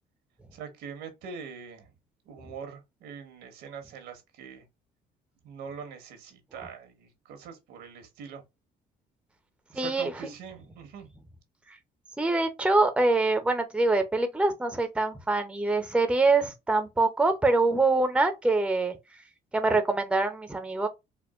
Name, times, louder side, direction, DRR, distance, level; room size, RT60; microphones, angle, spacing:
voice 1, 0.5-1.9 2.2-4.6 5.4-8.4 9.7-11.1, right 6 dB, 85° right, 1.4 m, -43 dB
voice 2, 9.7-10.3 12.2-19.0 19.5-20.9, right 3 dB, 5° right, 0.7 m, -24 dB
4.3 x 2.5 x 2.4 m
cardioid pair, 110°, 17 cm